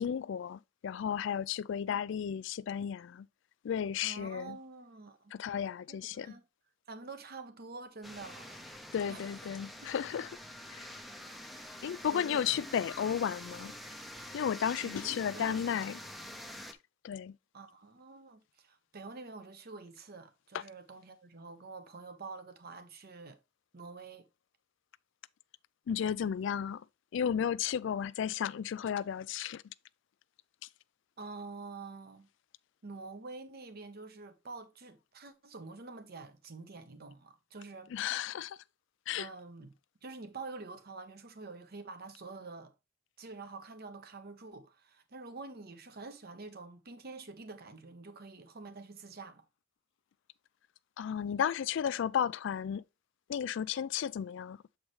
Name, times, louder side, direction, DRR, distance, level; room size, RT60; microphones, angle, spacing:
voice 1, 0.0-3.3 3.6-4.6 5.3-6.4 8.9-10.3 10.7-10.9 11.8-13.7 14.3-16.0 17.0-17.4 25.9-26.8 27.1-29.6 37.9-38.6 39.1-39.3 51.0-52.8 53.3-54.6, left 8 dB, 65° left, 0.3 m, -33 dB
voice 2, 4.0-5.3 5.9-6.4 6.9-8.7 9.1-9.3 11.5-12.6 14.8-15.8 17.5-23.4 23.7-24.2 31.2-32.3 32.8-37.9 39.2-39.7 40.0-42.7 43.2-49.4, right 3 dB, 50° right, 1.0 m, -47 dB
sound 1, 8.0-16.7, left 1 dB, ahead, 0.6 m, -46 dB
7.4 x 4.8 x 3.1 m
head